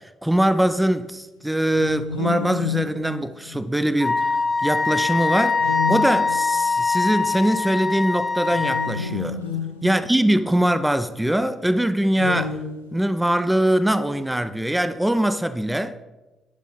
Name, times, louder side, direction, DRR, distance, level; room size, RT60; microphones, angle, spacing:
voice 1, 0.2-4.3 4.6-9.4 9.8-12.6 12.9-16.0, right 1 dB, 10° right, 0.5 m, -22 dB
sound 1, 1.7-4.0 5.5-6.7 8.5-10.7 12.1-13.2, left 7 dB, 85° left, 0.4 m, -31 dB
Wind instrument woodwind instrument, 4.0-8.9, left 4 dB, 25° left, 0.9 m, -23 dB
11.5 x 5.0 x 3.7 m
figure-of-eight pair, 40°, 0 cm